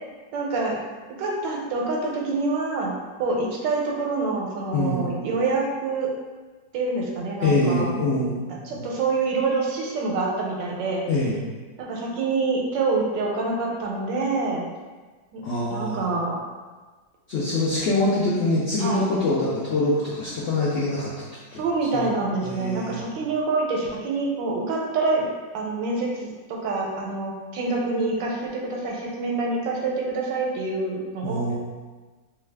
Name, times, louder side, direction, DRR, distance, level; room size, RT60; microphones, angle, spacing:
voice 1, 0.3-0.8 1.2-2.9 3.2-6.1 6.7-7.9 8.5-11.0 11.8-14.6 15.3-15.4 15.7-16.4 18.8-19.1 21.6-25.2 25.5-31.5, right 3 dB, 80° right, -1 dB, 1.3 m, -26 dB
voice 2, 4.7-5.1 7.4-8.4 8.7-8.9 11.1-11.4 15.4-16.0 17.3-21.2 21.5-21.6 21.9-22.1 22.4-23.0 31.2-31.5, left 2 dB, 75° left, -7 dB, 0.6 m, -24 dB
3.0 x 2.3 x 3.2 m, 1.3 s
omnidirectional pair, 2.0 m